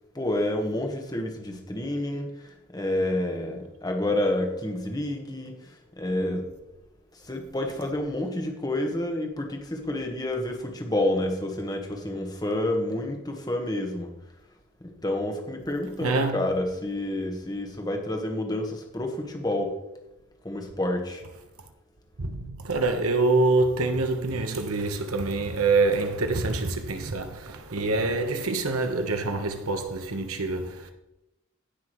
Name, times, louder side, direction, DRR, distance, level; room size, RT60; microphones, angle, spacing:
voice 1, 0.1-5.7 6.0-6.4 7.1-14.1 14.8-19.8 20.4-21.2, left 1 dB, 15° left, 1.3 m, -29 dB
voice 2, 16.0-16.4 22.2-30.9, right 3 dB, 80° right, 1.1 m, -26 dB
16.5 x 6.0 x 3.1 m
head